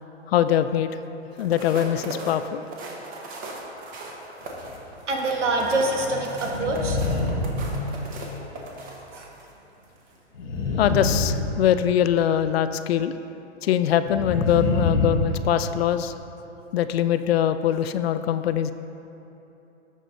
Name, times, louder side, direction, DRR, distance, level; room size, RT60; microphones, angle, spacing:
voice 1, 0.3-0.9 1.4-2.6 10.8-13.1 13.6-16.2 16.7-18.7, left 10 dB, 60° left, 11 dB, 0.5 m, -22 dB
sound 1, 1.3-9.5 10.0-10.2, right 2 dB, 25° right, 1.2 m, -38 dB
sound 2, 4.4-4.8 6.4-8.3 10.3-12.0 14.0-16.0, left 3 dB, 85° left, 1.5 m, -27 dB
voice 2, 5.1-8.1 9.1-9.3, right 2 dB, 90° right, 0 dB, 1.7 m, -26 dB
14.0 x 5.0 x 3.9 m, 3.0 s
hypercardioid pair, 130°, 35 cm